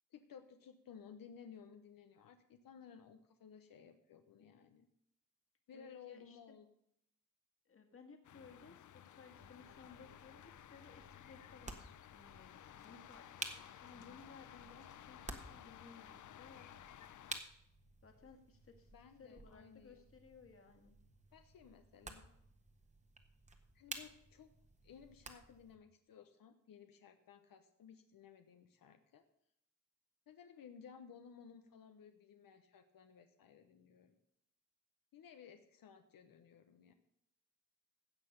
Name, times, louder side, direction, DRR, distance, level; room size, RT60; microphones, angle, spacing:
voice 1, 0.1-4.9 5.7-6.7 18.9-20.0 21.3-22.3 23.7-24.5 24.8-29.2 30.3-34.1 35.1-36.9, left 7 dB, 85° left, 7 dB, 1.0 m, -58 dB
voice 2, 5.7-6.6 7.7-11.8 12.1-16.7 18.0-18.9 19.2-21.0, left 4 dB, 40° left, 4 dB, 1.9 m, -59 dB
sound 1, 8.2-17.4, left 11 dB, 65° left, 0.6 m, -56 dB
sound 2, 9.4-25.8, right 2 dB, 20° right, 1.3 m, -53 dB
16.0 x 5.9 x 6.7 m, 0.75 s
wide cardioid pair, 140°, 33 cm